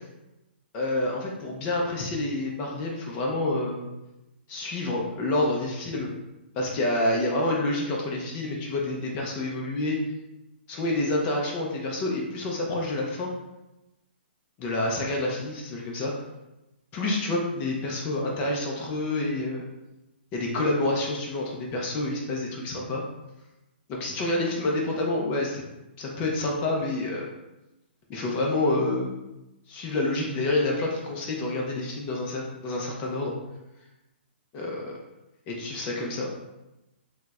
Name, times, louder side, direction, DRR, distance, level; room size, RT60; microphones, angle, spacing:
voice 1, 0.7-3.9 4.5-6.1 6.5-10.0 10.7-13.3 14.6-16.1 16.9-19.6 20.3-23.0 23.9-25.6 26.0-27.3 28.1-29.1 29.7-33.3 34.5-34.9 35.5-36.3, left 2 dB, 25° left, -1 dB, 0.4 m, -28 dB
4.3 x 2.1 x 2.3 m, 0.96 s
hypercardioid pair, 160°, 6 cm